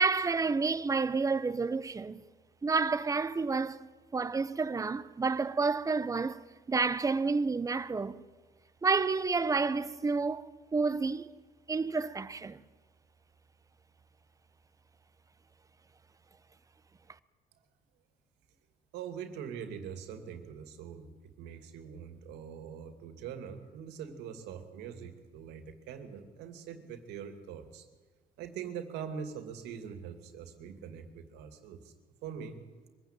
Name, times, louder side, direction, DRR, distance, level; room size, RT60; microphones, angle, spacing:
voice 1, 0.0-2.2 2.6-6.4 6.7-8.2 8.8-11.3 11.7-12.6, right 4 dB, 20° right, 0.8 m, -30 dB
voice 2, 18.9-27.9 28.4-31.9 32.2-32.6, right 7 dB, 90° right, 2.5 m, -43 dB
23.0 x 16.0 x 9.0 m
cardioid pair, 110°, 17 cm